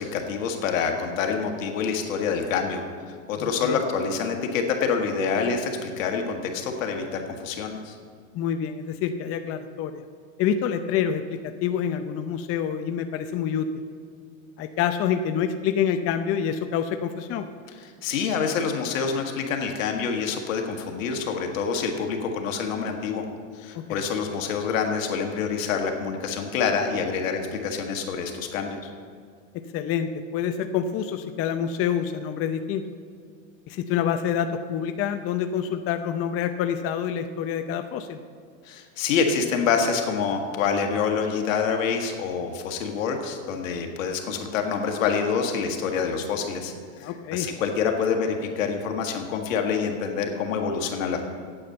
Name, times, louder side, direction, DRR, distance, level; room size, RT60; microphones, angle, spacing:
voice 1, 0.0-2.8 3.3-8.0 17.8-23.3 23.5-28.9 38.7-51.2, left 6 dB, 80° left, 3 dB, 1.8 m, -27 dB
voice 2, 3.4-3.8 8.3-10.0 10.4-13.9 14.6-17.5 23.7-24.0 29.5-32.8 33.7-38.2 47.0-47.5, left 8 dB, 35° left, 8 dB, 0.6 m, -27 dB
8.7 x 8.7 x 7.8 m, 2.1 s
supercardioid pair, 120°, 39 cm